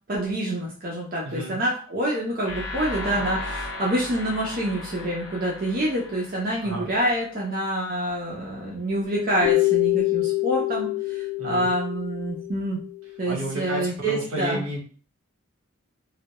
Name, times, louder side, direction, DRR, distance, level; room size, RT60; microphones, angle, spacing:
voice 1, 0.1-12.8 13.2-14.6, right 1 dB, 40° right, -3 dB, 0.5 m, -27 dB
voice 2, 1.2-1.6 6.6-6.9 11.4-11.7 13.2-14.8, right 1 dB, 75° right, -1 dB, 0.8 m, -31 dB
sound 1, 2.4-7.3, left 2 dB, 85° left, 0.6 m, -35 dB
sound 2, 9.4-13.2, left 19 dB, 45° left, 1.0 m, -25 dB
2.2 x 2.0 x 2.8 m, 0.42 s
head